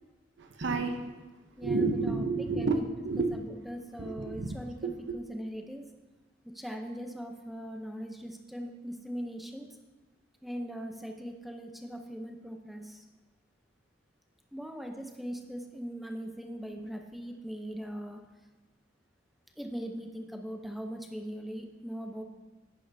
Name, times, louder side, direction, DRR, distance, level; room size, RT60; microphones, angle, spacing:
voice 1, 0.4-1.1 1.6-3.4 4.0-4.5 4.8-5.2, right 3 dB, 70° right, 0.7 m, -30 dB
voice 2, 1.6-2.2 2.6-2.9 3.3-4.8 5.1-5.8 6.5-9.7 10.4-13.0 14.5-18.2 19.6-22.2, equal, ahead, 0.7 m, -40 dB
10.5 x 10.0 x 2.7 m
head